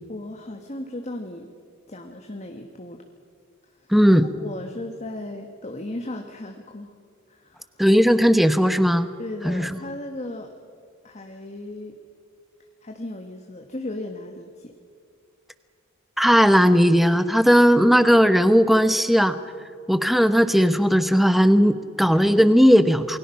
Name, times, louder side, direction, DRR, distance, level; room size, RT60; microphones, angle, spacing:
voice 1, 0.1-1.5 1.9-3.0 3.6-3.9 4.3-6.9 7.3-7.7 9.2-10.5 11.0-12.0 12.8-14.7, left 1 dB, 30° left, 4 dB, 1.4 m, -36 dB
voice 2, 3.9-4.3 7.8-9.1 9.4-9.7 16.2-19.4 19.9-23.2, equal, ahead, 11 dB, 0.9 m, -17 dB
28.0 x 21.5 x 5.8 m, 2.3 s
head